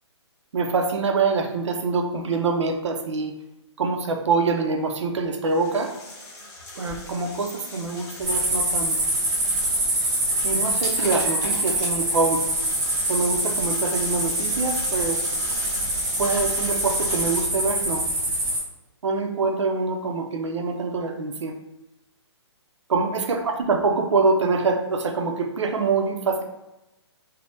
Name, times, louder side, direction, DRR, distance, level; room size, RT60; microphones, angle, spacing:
voice 1, 0.5-3.3 3.8-5.9 6.8-9.1 10.4-12.4 13.1-15.2 16.2-18.0 19.0-21.5 22.9-26.4, right 4 dB, 85° right, 5 dB, 0.5 m, -25 dB
sound 1, 5.4-17.4, left 2 dB, 10° left, 0.5 m, -38 dB
sound 2, 8.2-18.6, right 1 dB, 15° right, 0.8 m, -25 dB
3.2 x 2.0 x 2.8 m, 0.97 s
hypercardioid pair, 170°, 15 cm